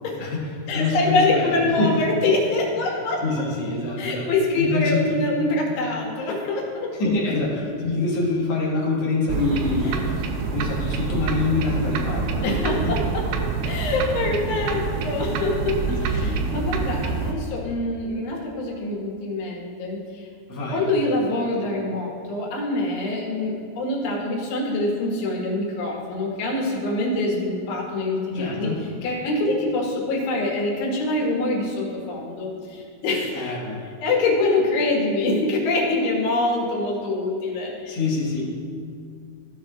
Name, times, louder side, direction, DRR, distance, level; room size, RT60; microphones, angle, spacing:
voice 1, 0.2-2.0 2.8-2.9 3.2-4.3 4.5-5.1 7.0-13.0 15.9-16.4 20.5-20.9 28.3-28.8 33.3-33.8 37.9-38.5, left 3 dB, 55° left, -4 dB, 1.9 m, -26 dB
voice 2, 0.7-3.2 4.0-6.9 9.8-9.9 12.4-13.2 13.6-15.8 16.0-20.2 20.7-28.7 29.0-33.5 34.0-38.0, left 2 dB, 80° left, -3 dB, 3.6 m, -25 dB
sound 1, 9.3-17.3, right 5 dB, 80° right, 2.7 m, -26 dB
14.5 x 7.5 x 2.4 m, 2.3 s
omnidirectional pair, 4.9 m